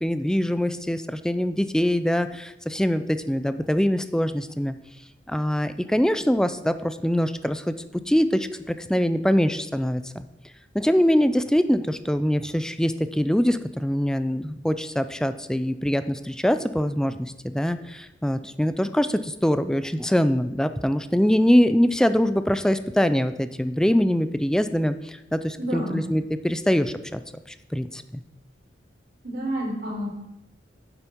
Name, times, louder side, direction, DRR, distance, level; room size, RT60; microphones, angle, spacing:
voice 1, 0.0-4.7 5.3-7.7 8.1-10.3 10.7-27.2 27.7-28.2, equal, 5° left, 11 dB, 0.4 m, -23 dB
voice 2, 25.6-26.0 29.2-30.1, right 1 dB, 60° right, -3 dB, 3.9 m, -29 dB
9.2 x 7.8 x 4.5 m, 0.90 s
head